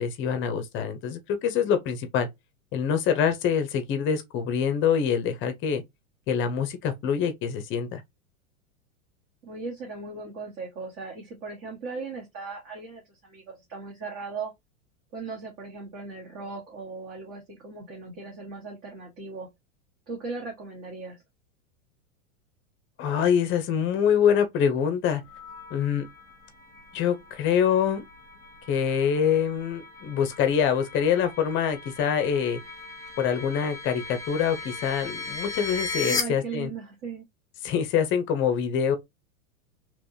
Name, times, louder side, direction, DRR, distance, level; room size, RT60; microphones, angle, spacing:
voice 1, 0.0-2.3 2.7-5.8 6.3-8.0 23.0-25.2 25.7-26.1 26.9-28.0 28.7-32.6 33.2-36.7 37.6-39.0, left 8 dB, 30° left, 0.7 m, -25 dB
voice 2, 9.4-14.5 15.1-19.5 20.1-21.2 36.1-37.2, right 4 dB, 35° right, 1.3 m, -38 dB
sound 1, 25.3-36.2, left 4 dB, 10° left, 1.2 m, -38 dB
3.3 x 3.0 x 2.6 m
supercardioid pair, 140°, 41 cm